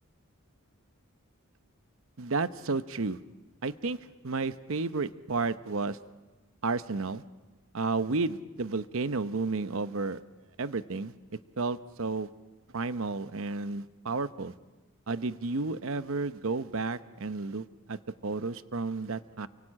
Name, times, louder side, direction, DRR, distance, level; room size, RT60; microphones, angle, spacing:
voice 1, 2.2-3.2 3.6-4.0 4.2-6.0 6.6-7.2 7.7-10.2 10.6-11.1 11.6-12.3 12.7-14.5 15.1-19.5, right 3 dB, 60° right, 13 dB, 0.8 m, -32 dB
29.5 x 23.0 x 8.7 m, 1.2 s
head